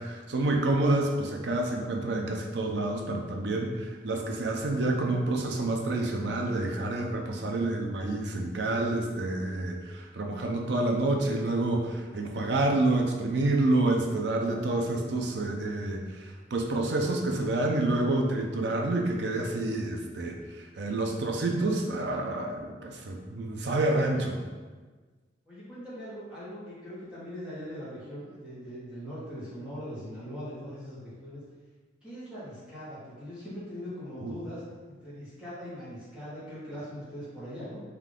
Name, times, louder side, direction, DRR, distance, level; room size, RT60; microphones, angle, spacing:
voice 1, 0.0-24.4 34.2-34.3, right 2 dB, 70° right, 2 dB, 0.5 m, -28 dB
voice 2, 25.4-31.4 32.0-37.8, equal, 5° right, -12 dB, 1.3 m, -41 dB
3.6 x 2.8 x 3.6 m, 1.4 s
head